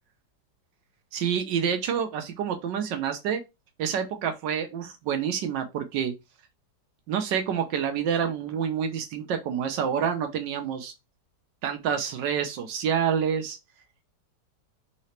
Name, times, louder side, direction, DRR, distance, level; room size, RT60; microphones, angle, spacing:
voice 1, 1.1-3.4 3.8-6.1 7.1-10.9 11.6-13.6, right 8 dB, 85° right, 1.5 m, -28 dB
3.8 x 2.9 x 3.2 m
omnidirectional pair, 1.9 m